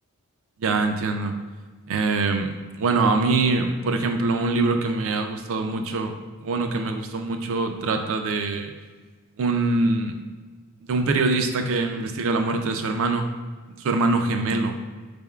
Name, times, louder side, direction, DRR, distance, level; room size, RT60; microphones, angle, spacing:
voice 1, 0.6-1.3 1.9-6.1 6.4-8.7 9.4-10.1 10.8-13.3 13.8-14.8, right 3 dB, 60° right, 6 dB, 0.4 m, -24 dB
4.4 x 3.4 x 2.3 m, 1.4 s
head